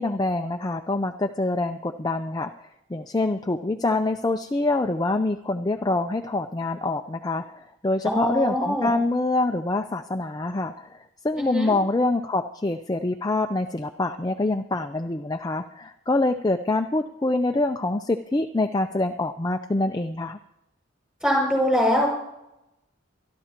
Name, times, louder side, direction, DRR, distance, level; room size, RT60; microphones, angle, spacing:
voice 1, 0.0-2.5 2.9-11.0 11.2-20.4, left 2 dB, 20° left, 6 dB, 0.5 m, -25 dB
voice 2, 8.0-8.9 11.4-11.7 21.2-22.1, equal, 5° right, -1 dB, 6.3 m, -23 dB
24.5 x 12.5 x 3.0 m, 0.84 s
head